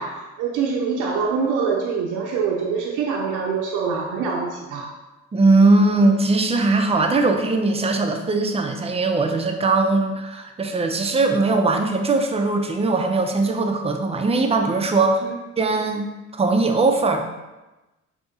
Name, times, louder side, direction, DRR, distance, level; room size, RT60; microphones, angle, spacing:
voice 1, 0.0-4.9 15.0-15.4, right 5 dB, 90° right, -1 dB, 0.5 m, -25 dB
voice 2, 5.3-15.2 15.6-16.1 16.3-17.3, right 3 dB, 20° right, 4 dB, 0.4 m, -20 dB
3.5 x 2.7 x 2.7 m, 1.1 s
cardioid pair, 90°, 30 cm